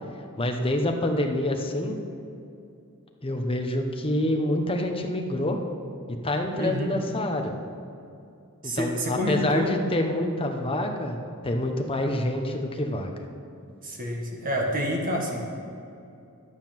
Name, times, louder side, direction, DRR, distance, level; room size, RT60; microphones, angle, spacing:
voice 1, 0.4-2.0 3.2-5.6 6.1-7.5 8.6-11.2 11.4-13.1, left 1 dB, 25° left, 3 dB, 1.1 m, -27 dB
voice 2, 6.6-7.0 8.6-9.7 12.0-12.3 13.8-15.4, equal, 40° right, 0 dB, 1.7 m, -28 dB
11.0 x 9.7 x 6.0 m, 2.5 s
head